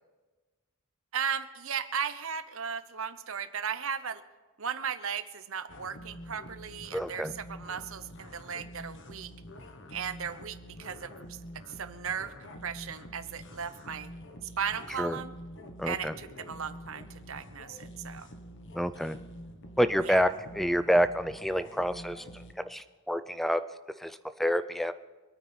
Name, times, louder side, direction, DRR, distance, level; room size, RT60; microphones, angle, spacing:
voice 1, 1.1-4.2 4.6-9.3 9.9-11.4 11.7-14.1 14.6-15.3 15.8-18.3 20.0-20.2, right 7 dB, 65° right, 11 dB, 0.9 m, -36 dB
sound 1, 5.7-22.5, equal, 55° left, 1.3 m, -47 dB
voice 2, 6.9-7.3 15.0-15.2 15.8-16.1 18.7-19.2 19.8-23.6 24.0-24.9, equal, ahead, 12 dB, 0.5 m, -28 dB
25.0 x 9.4 x 4.4 m, 1.3 s
head